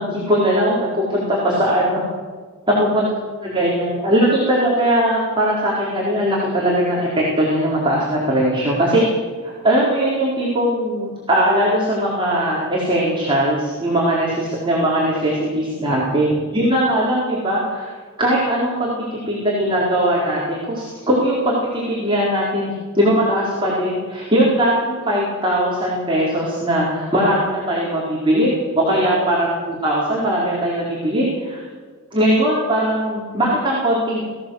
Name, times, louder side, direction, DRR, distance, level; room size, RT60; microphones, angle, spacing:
voice 1, 0.0-2.1 2.7-3.1 3.4-9.0 9.4-17.9 18.2-31.6 32.1-34.2, right 1 dB, 25° right, -5 dB, 4.5 m, -20 dB
21.0 x 15.5 x 8.0 m, 1.5 s
head